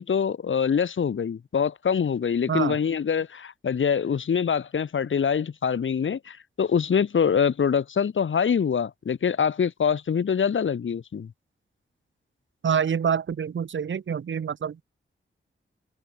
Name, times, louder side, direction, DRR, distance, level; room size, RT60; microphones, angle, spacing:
voice 1, 0.0-11.3, left 7 dB, 70° left, 1.6 m, -24 dB
voice 2, 2.5-2.8 12.6-14.8, right 7 dB, 65° right, 1.1 m, -26 dB
cardioid pair, 60°, 21 cm